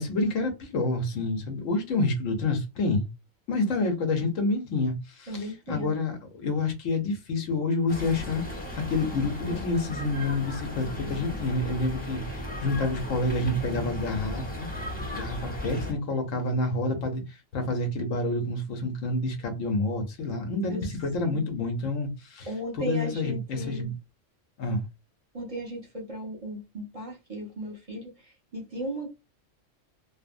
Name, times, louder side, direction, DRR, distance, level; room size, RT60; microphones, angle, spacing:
voice 1, 0.0-3.1 3.5-14.7 15.1-23.9 24.6-24.8, left 2 dB, 85° left, 1.1 m, -28 dB
voice 2, 5.3-5.9 20.6-20.8 21.2-21.4 22.5-23.9 25.3-29.1, equal, 30° right, 0.8 m, -36 dB
sound 1, 7.9-15.9, equal, 10° left, 0.6 m, -35 dB
2.9 x 2.1 x 2.5 m
omnidirectional pair, 1.3 m